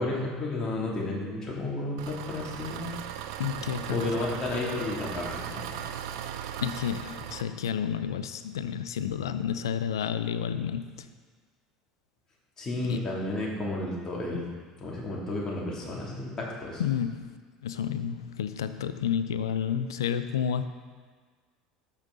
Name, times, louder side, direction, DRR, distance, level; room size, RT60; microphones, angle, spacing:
voice 1, 0.0-2.9 3.9-5.8 12.6-14.5 14.8-16.8, left 2 dB, 30° left, -4 dB, 2.8 m, -32 dB
Engine, 2.0-7.4, right 10 dB, 65° right, 0.5 m, -38 dB
voice 2, 3.4-4.2 6.6-11.1 12.8-13.0 16.8-17.3 17.6-20.7, left 8 dB, 80° left, 12 dB, 0.5 m, -30 dB
13.0 x 5.7 x 3.9 m, 1.5 s
hypercardioid pair, 70°, 2 cm